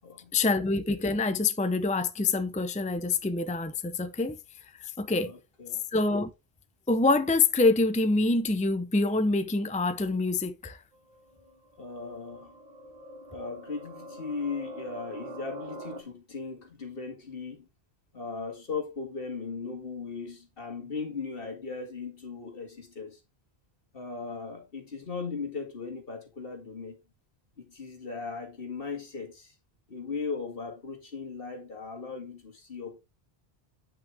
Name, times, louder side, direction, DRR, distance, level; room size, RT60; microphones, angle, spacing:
voice 1, 0.3-4.4 4.8-5.3 5.9-6.3 6.9-10.8, left 3 dB, 10° left, 0.6 m, -26 dB
voice 2, 5.1-5.8 11.8-12.5 13.3-17.7 18.1-23.2 23.9-27.0 27.6-29.5 29.9-33.0, left 4 dB, 60° left, 2.2 m, -38 dB
sound 1, 10.9-16.0, right 1 dB, 45° right, 1.5 m, -44 dB
9.1 x 6.0 x 3.5 m
omnidirectional pair, 1.1 m